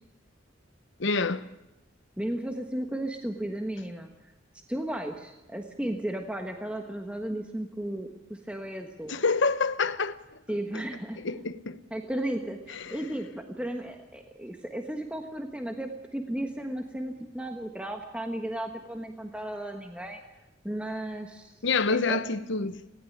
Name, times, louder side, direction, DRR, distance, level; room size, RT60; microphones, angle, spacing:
voice 1, 1.0-1.5 9.1-10.2 11.2-11.8 12.8-13.0 21.6-22.8, left 4 dB, 65° left, 1.0 m, -27 dB
voice 2, 2.2-4.1 4.7-9.2 10.5-11.2 11.9-20.2 20.6-21.5 21.9-22.2, right 1 dB, 5° right, 1.3 m, -34 dB
18.5 x 16.5 x 8.7 m
head